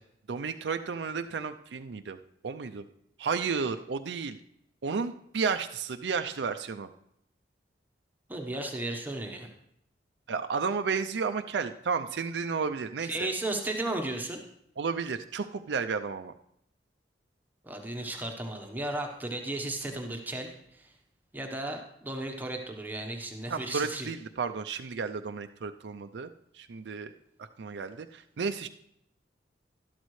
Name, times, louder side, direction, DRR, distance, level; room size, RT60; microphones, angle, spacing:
voice 1, 0.3-2.2 2.4-2.9 3.2-4.4 4.8-6.9 10.3-13.1 14.8-16.3 23.5-27.1 27.4-28.7, right 5 dB, 85° right, 7 dB, 0.5 m, -32 dB
voice 2, 8.3-9.5 13.0-14.4 17.6-20.9 21.3-24.1, right 2 dB, 10° right, 2 dB, 1.0 m, -35 dB
12.5 x 12.0 x 3.2 m, 0.74 s
head